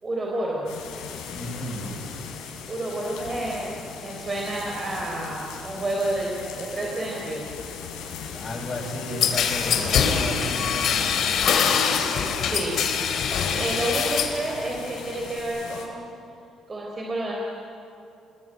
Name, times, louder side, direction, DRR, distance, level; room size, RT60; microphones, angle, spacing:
voice 1, 0.0-0.6 2.7-7.4 11.4-11.6 12.4-12.8 13.5-16.0 16.7-17.3, right 1 dB, 25° right, -1 dB, 4.3 m, -30 dB
sound 1, 0.7-15.9, left 6 dB, 90° left, 5.5 m, -38 dB
voice 2, 1.3-2.0 8.3-11.4 13.5-13.8, left 1 dB, 25° left, -1 dB, 7.2 m, -33 dB
sound 2, 9.2-14.4 14.8-15.4, left 7 dB, 60° left, 3.2 m, -24 dB
28.0 x 21.0 x 9.3 m, 2.7 s
cardioid pair, 120°, 0 cm